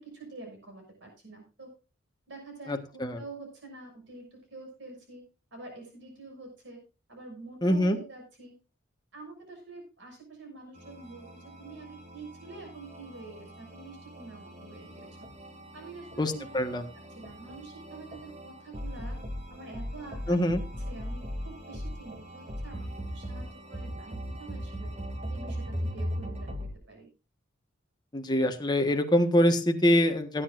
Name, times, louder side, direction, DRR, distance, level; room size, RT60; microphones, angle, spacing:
voice 1, 0.0-1.7 2.3-5.2 5.5-6.8 7.1-8.5 9.1-15.1 15.7-16.5 17.1-19.2 19.5-20.4 20.9-24.9 25.3-26.6 26.9-27.1, right 3 dB, 65° right, 3 dB, 6.5 m, -46 dB
voice 2, 2.7-3.2 7.6-8.0 16.2-16.9 20.3-20.6 28.1-30.4, left 1 dB, 20° left, 4 dB, 1.5 m, -25 dB
sound 1, 10.7-26.7, equal, 35° right, 2.4 m, -39 dB
18.5 x 9.8 x 2.6 m, 0.31 s
head